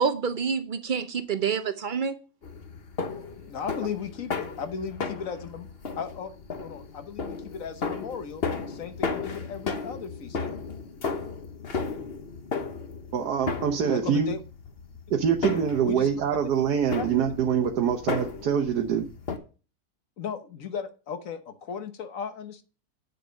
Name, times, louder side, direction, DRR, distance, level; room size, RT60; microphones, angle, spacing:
voice 1, 0.0-2.2, right 6 dB, 60° right, 11 dB, 0.5 m, -27 dB
sound 1, 2.4-19.4, left 4 dB, 45° left, 1.2 m, -35 dB
voice 2, 3.5-5.7 5.9-6.3 6.6-10.6 13.9-14.4 15.8-16.1 17.0-17.1 20.2-22.6, left 6 dB, 60° left, 9 dB, 1.3 m, -36 dB
voice 3, 13.1-14.3 15.1-19.1, right 7 dB, 85° right, 4 dB, 1.5 m, -25 dB
9.3 x 6.6 x 5.2 m, 0.35 s
omnidirectional pair, 1.7 m